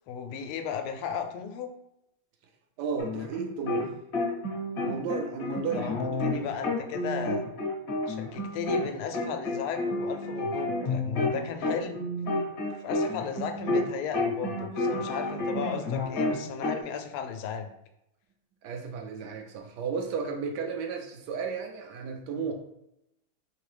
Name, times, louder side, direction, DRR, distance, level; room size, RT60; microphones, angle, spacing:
voice 1, 0.1-1.7 5.7-6.0 6.2-7.4 8.1-12.1 12.8-17.7, left 7 dB, 85° left, 6 dB, 1.5 m, -35 dB
voice 2, 2.8-3.9 4.8-6.5 18.6-22.5, right 5 dB, 70° right, 3 dB, 1.0 m, -34 dB
sound 1, 3.0-3.9 4.1-8.9 9.1-13.9 14.1-16.8, left 2 dB, 50° left, 0.7 m, -30 dB
3.7 x 3.4 x 3.2 m, 0.83 s
omnidirectional pair, 2.4 m